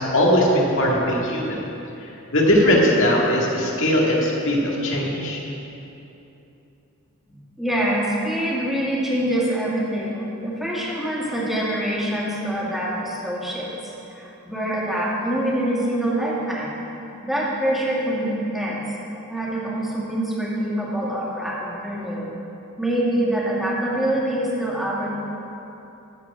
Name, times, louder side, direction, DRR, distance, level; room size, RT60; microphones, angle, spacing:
voice 1, 0.0-1.6 2.3-5.4, equal, 60° left, -2 dB, 2.0 m, -19 dB
voice 2, 7.3-13.7 14.1-16.7 17.2-18.8 19.3-22.3 22.8-25.3, right 1 dB, ahead, -7 dB, 2.3 m, -25 dB
13.5 x 4.8 x 8.2 m, 2.9 s
head